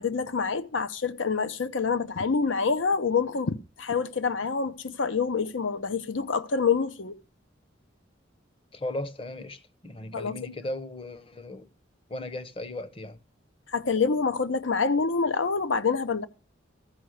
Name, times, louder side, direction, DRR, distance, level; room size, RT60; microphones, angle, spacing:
voice 1, 0.0-7.2 10.1-10.3 13.7-16.3, left 5 dB, 90° left, 0.8 m, -27 dB
voice 2, 8.7-11.7 12.1-13.2, left 1 dB, 30° left, 0.8 m, -36 dB
14.0 x 5.6 x 6.4 m
head